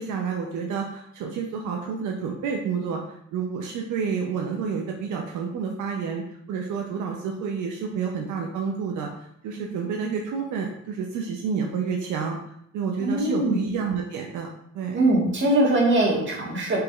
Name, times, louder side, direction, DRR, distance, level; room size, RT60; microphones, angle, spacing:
voice 1, 0.0-3.0 3.3-12.4 12.7-14.5 14.7-15.0, right 6 dB, 80° right, 1 dB, 0.5 m, -29 dB
voice 2, 13.0-13.6 14.9-16.8, right 1 dB, 40° right, -3 dB, 1.3 m, -21 dB
4.5 x 3.0 x 2.3 m, 0.73 s
cardioid pair, 90°, 30 cm